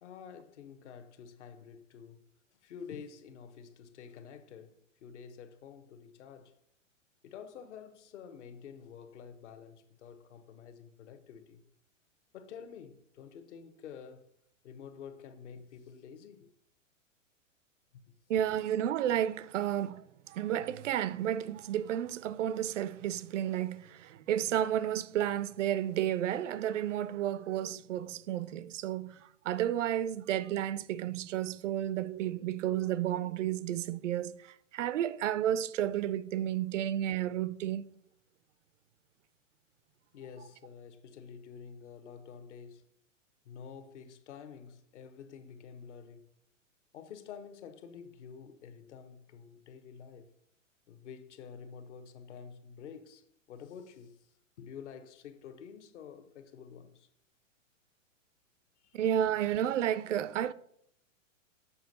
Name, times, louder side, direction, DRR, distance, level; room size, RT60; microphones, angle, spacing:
voice 1, 0.0-2.2 2.5-6.5 7.2-11.6 12.3-14.3 14.6-16.5 40.1-42.8 43.4-46.2 46.9-50.3 50.9-54.2 54.6-57.1 58.8-59.0, left 7 dB, 65° left, 0.9 m, -49 dB
voice 2, 18.3-37.8 58.9-60.5, right 11 dB, 70° right, 0.5 m, -32 dB
7.0 x 4.4 x 4.0 m
hypercardioid pair, 115°, 39 cm